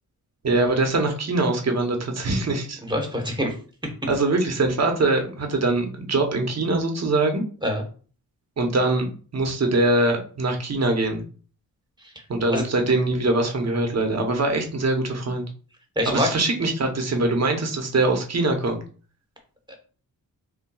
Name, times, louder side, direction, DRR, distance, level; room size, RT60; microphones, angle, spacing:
voice 1, 0.4-2.8 4.1-7.4 8.6-11.2 12.3-15.5 16.1-18.8, right 2 dB, 45° right, 3 dB, 0.9 m, -23 dB
voice 2, 2.8-3.5 7.6-7.8 12.5-12.6 16.0-16.3, left 1 dB, 10° right, 3 dB, 1.1 m, -24 dB
5.8 x 2.2 x 2.3 m, 0.41 s
cardioid pair, 75°, 38 cm